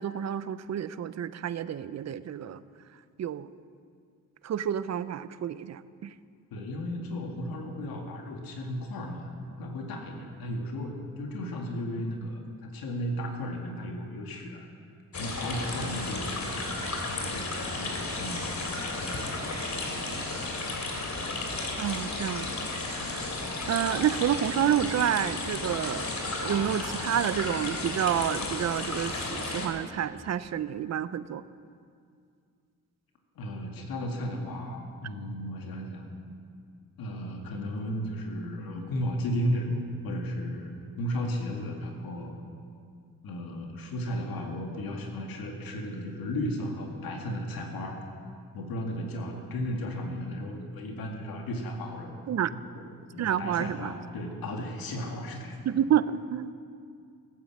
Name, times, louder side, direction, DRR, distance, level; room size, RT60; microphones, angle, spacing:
voice 1, 0.0-2.6 3.2-3.5 4.4-5.8 21.8-23.2 23.7-26.1 26.4-31.4 52.3-52.5 53.2-53.9 55.7-56.5, right 9 dB, 50° right, 15 dB, 0.6 m, -29 dB
voice 2, 6.5-14.7 15.1-16.5 17.1-17.5 17.8-18.4 33.4-36.0 37.0-42.4 43.2-48.0 48.5-52.1 53.1-55.6, equal, 85° left, 2 dB, 2.2 m, -34 dB
sound 1, 15.1-29.7, left 2 dB, 50° left, 2.8 m, -33 dB
16.5 x 9.5 x 7.4 m, 2.3 s
cardioid pair, 80°, 35 cm